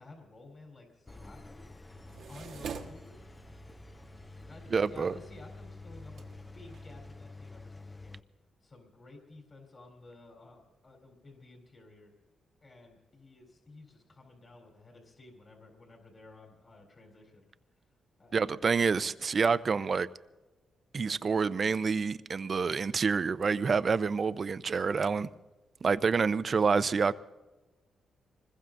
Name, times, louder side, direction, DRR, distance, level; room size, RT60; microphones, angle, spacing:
voice 1, 0.0-1.7 2.3-3.2 4.5-8.2 8.6-12.1 12.6-17.5 18.2-18.6, left 2 dB, 45° left, 3.9 m, -53 dB
Engine, 1.1-8.2, left 3 dB, 20° left, 0.5 m, -49 dB
sound 1, 1.9-7.2, right 6 dB, 75° right, 1.3 m, -47 dB
voice 2, 4.7-5.1 18.3-20.1 20.9-25.3 25.8-27.1, right 5 dB, 45° right, 0.6 m, -28 dB
25.0 x 21.0 x 2.6 m
cardioid pair, 80°, 0 cm